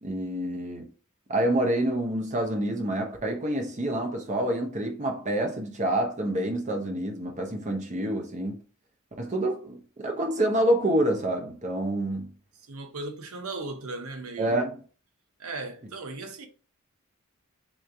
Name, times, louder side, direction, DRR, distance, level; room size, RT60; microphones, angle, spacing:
voice 1, 0.0-0.9 1.3-8.6 9.2-12.3 14.4-14.8, right 1 dB, 35° right, 0.8 m, -27 dB
voice 2, 12.6-14.7 15.4-16.5, right 3 dB, 75° right, 0.8 m, -37 dB
3.8 x 3.1 x 3.3 m
head